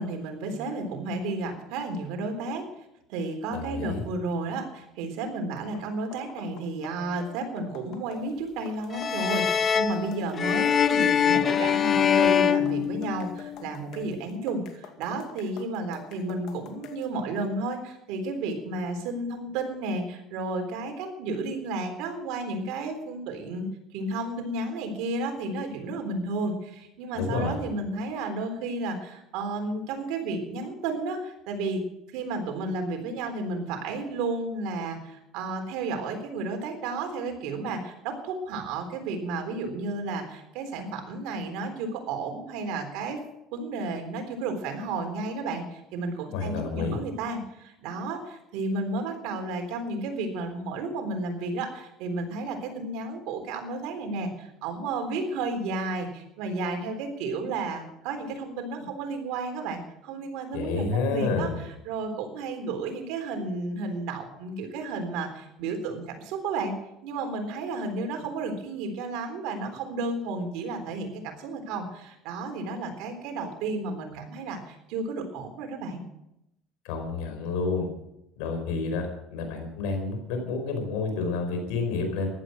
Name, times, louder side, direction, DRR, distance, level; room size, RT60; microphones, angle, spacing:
voice 1, 0.0-2.7 3.1-23.7 23.9-31.8 32.1-43.2 43.5-66.7 67.0-76.0, right 3 dB, 75° right, 5 dB, 3.8 m, -32 dB
voice 2, 3.5-4.0 27.1-27.6 46.3-47.0 60.5-61.6 76.8-77.9 78.4-82.3, left 4 dB, 80° left, 5 dB, 5.0 m, -29 dB
sound 1, 5.6-17.1, left 8 dB, 65° left, 2.3 m, -48 dB
sound 2, 8.9-13.5, left 8 dB, 35° left, 0.9 m, -23 dB
15.0 x 11.5 x 6.4 m, 0.83 s
supercardioid pair, 100°, 0 cm